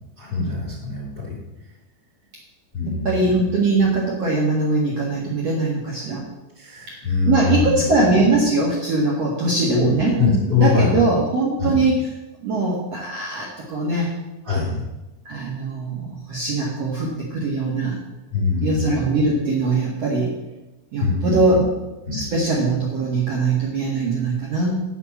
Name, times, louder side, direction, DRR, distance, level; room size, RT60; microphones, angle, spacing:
voice 1, 0.2-1.4 2.7-3.3 6.6-8.2 9.7-11.0 11.6-11.8 14.4-14.8 18.3-19.0 21.0-21.6 22.1-22.3, left 4 dB, 5° left, -9 dB, 3.6 m, -23 dB
voice 2, 2.8-6.2 6.9-7.0 7.3-10.2 10.6-12.0 12.4-14.1 15.3-18.0 18.6-20.3 20.9-21.6 22.1-24.8, right 3 dB, 55° right, -4 dB, 1.9 m, -21 dB
9.9 x 5.9 x 8.3 m, 1.0 s
omnidirectional pair, 5.2 m